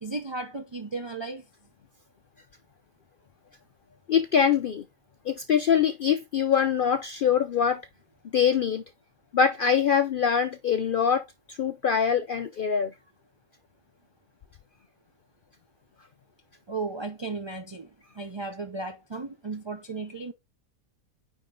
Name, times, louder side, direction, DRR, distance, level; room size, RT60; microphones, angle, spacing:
voice 1, 0.0-1.5 16.7-20.3, right 3 dB, 40° right, 0.3 m, -35 dB
voice 2, 4.1-4.8 5.3-7.8 8.3-8.8 9.3-12.9, left 7 dB, 85° left, 0.4 m, -24 dB
9.2 x 3.7 x 3.6 m
omnidirectional pair, 1.5 m